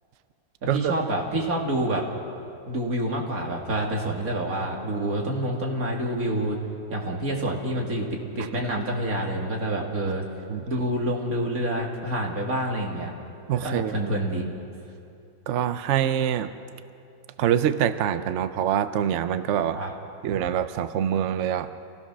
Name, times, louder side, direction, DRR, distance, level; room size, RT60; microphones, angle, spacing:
voice 1, 0.6-2.0 2.6-6.6 6.9-10.3 10.7-13.1 13.6-14.5 19.7-19.9, right 1 dB, 45° right, -1 dB, 2.8 m, -27 dB
voice 2, 13.5-13.9 15.5-16.5 17.4-19.8 20.2-21.7, right 9 dB, 75° right, 11 dB, 0.6 m, -25 dB
27.0 x 16.0 x 6.2 m, 2.6 s
omnidirectional pair, 2.0 m